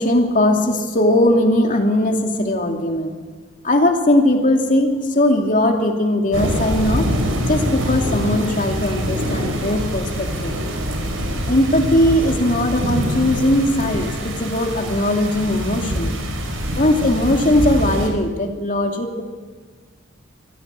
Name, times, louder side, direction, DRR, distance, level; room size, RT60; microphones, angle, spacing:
voice 1, 0.0-3.1 3.6-7.1 7.5-10.5 11.5-16.2 16.8-19.2, left 1 dB, 40° left, 3 dB, 2.7 m, -19 dB
sound 1, 6.3-18.1, equal, 80° right, 4.9 m, -24 dB
25.0 x 16.5 x 7.7 m, 1.5 s
head